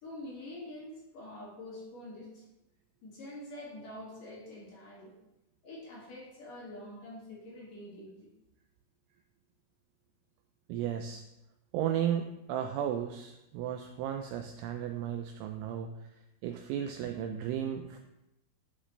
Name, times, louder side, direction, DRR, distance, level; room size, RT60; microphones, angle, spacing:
voice 1, 0.0-2.5 3.0-5.1 5.6-8.3, left 1 dB, 50° left, -7 dB, 3.0 m, -46 dB
voice 2, 10.7-11.2 11.7-15.9 16.4-18.0, right 9 dB, 85° right, 5 dB, 2.7 m, -34 dB
12.0 x 5.5 x 3.3 m, 0.90 s
omnidirectional pair, 5.9 m